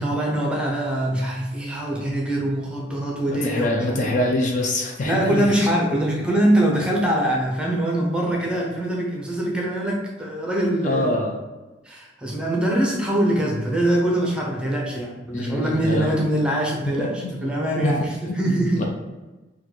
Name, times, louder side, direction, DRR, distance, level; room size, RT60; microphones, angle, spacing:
voice 1, 0.0-4.2 5.0-11.1 11.8-18.8, right 1 dB, 5° right, -2 dB, 0.6 m, -23 dB
voice 2, 3.3-5.7 10.8-11.4 15.3-16.1 17.0-17.3 17.8-17.9 18.2-18.4 18.8-18.9, left 1 dB, 40° left, 1 dB, 0.4 m, -24 dB
4.0 x 2.2 x 3.0 m, 1.1 s
head